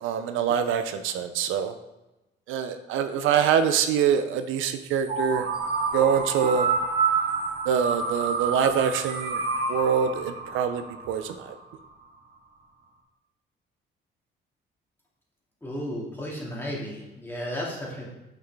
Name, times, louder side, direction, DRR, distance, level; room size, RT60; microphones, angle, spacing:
voice 1, 0.0-1.7 2.5-5.5 5.9-6.7 7.7-9.4 9.7-11.5, right 7 dB, 85° right, 9 dB, 0.5 m, -25 dB
sound 1, 5.1-11.9, right 4 dB, 55° right, 1.1 m, -28 dB
voice 2, 15.6-18.1, equal, 10° left, -4 dB, 2.1 m, -34 dB
5.9 x 5.4 x 3.4 m, 1.0 s
cardioid pair, 90°, 20 cm